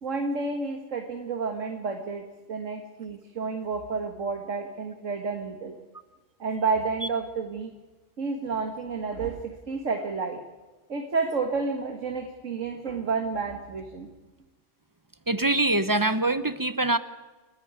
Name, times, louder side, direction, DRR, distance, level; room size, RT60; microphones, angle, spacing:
voice 1, 0.0-5.7 6.4-7.7 8.2-10.4 10.9-14.1, right 4 dB, 75° right, 4 dB, 2.0 m, -30 dB
voice 2, 15.3-17.0, right 2 dB, 20° right, 12 dB, 0.7 m, -24 dB
29.5 x 11.0 x 9.6 m, 1.2 s
omnidirectional pair, 1.3 m